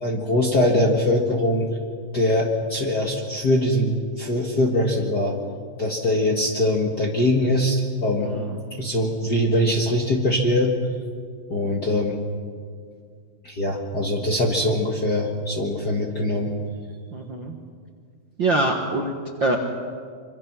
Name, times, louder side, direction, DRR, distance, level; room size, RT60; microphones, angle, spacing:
voice 1, 0.0-1.7 2.1-5.3 5.8-8.3 8.8-10.7 11.5-12.2 13.4-16.5, left 1 dB, 40° left, 0 dB, 1.6 m, -22 dB
voice 2, 8.2-8.6 17.1-17.6 18.4-19.1 19.4-19.6, right 2 dB, 50° right, 2 dB, 1.5 m, -24 dB
25.5 x 25.0 x 6.1 m, 2.1 s
omnidirectional pair, 4.0 m